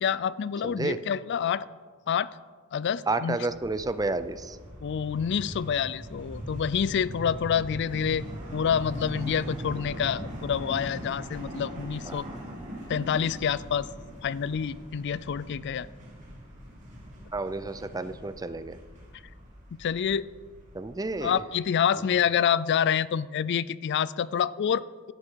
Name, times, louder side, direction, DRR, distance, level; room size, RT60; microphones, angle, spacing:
voice 1, 0.0-1.7 2.1-2.3 2.7-3.5 4.8-8.3 8.5-12.3 12.9-13.9 14.2-15.9 19.8-20.3 21.2-25.1, left 8 dB, 55° left, 18 dB, 0.4 m, -27 dB
voice 2, 0.6-1.0 3.1-4.6 12.1-12.2 17.3-18.8 20.7-21.3, right 3 dB, 15° right, 13 dB, 0.5 m, -31 dB
sound 1, 3.5-21.3, equal, 35° right, 3.5 m, -41 dB
15.5 x 11.5 x 4.6 m, 1.5 s
head